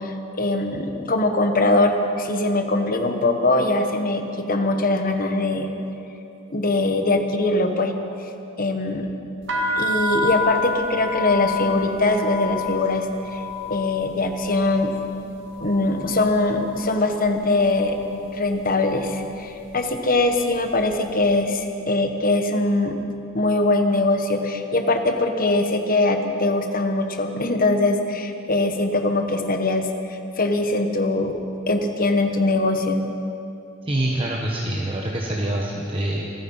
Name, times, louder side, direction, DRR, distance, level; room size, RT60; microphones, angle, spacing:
voice 1, 0.0-5.7 6.5-7.9 8.6-9.1 9.8-14.9 15.6-18.0 18.2-23.0 23.3-31.4 31.7-33.1, left 2 dB, 45° left, 6 dB, 1.3 m, -22 dB
sound 1, 9.4-17.4 17.6-18.3 18.9-19.2 19.5-20.9, left 3 dB, 60° right, 2.1 m, -29 dB
voice 2, 33.9-36.2, right 1 dB, 25° right, -2 dB, 1.2 m, -25 dB
27.0 x 9.4 x 5.7 m, 2.8 s
head